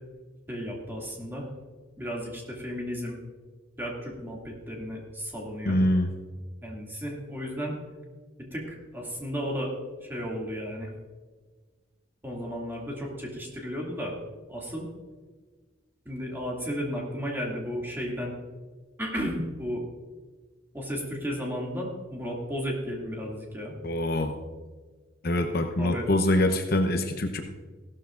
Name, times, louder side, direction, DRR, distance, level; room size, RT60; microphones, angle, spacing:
voice 1, 0.5-1.5 2.0-3.2 3.8-5.8 6.6-7.7 8.5-9.7 10.0-10.9 12.2-14.1 14.5-14.9 16.1-18.3 19.0-19.8 20.7-23.7 25.8-26.1, equal, 10° right, -2 dB, 2.4 m, -34 dB
voice 2, 5.7-6.1 23.8-24.4 25.2-27.4, left 1 dB, 50° left, 5 dB, 0.8 m, -24 dB
16.0 x 13.0 x 2.5 m, 1.4 s
head